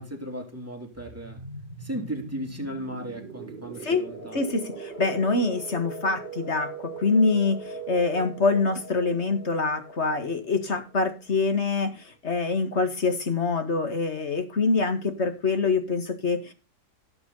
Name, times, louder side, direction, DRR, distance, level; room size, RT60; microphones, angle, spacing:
voice 1, 0.0-1.4 1.8-4.4, right 1 dB, 10° right, 2.9 m, -36 dB
sound 1, 1.0-11.5, right 3 dB, 35° right, 3.7 m, -40 dB
voice 2, 4.3-16.5, left 3 dB, 40° left, 2.0 m, -25 dB
17.0 x 7.1 x 4.0 m
omnidirectional pair, 1.8 m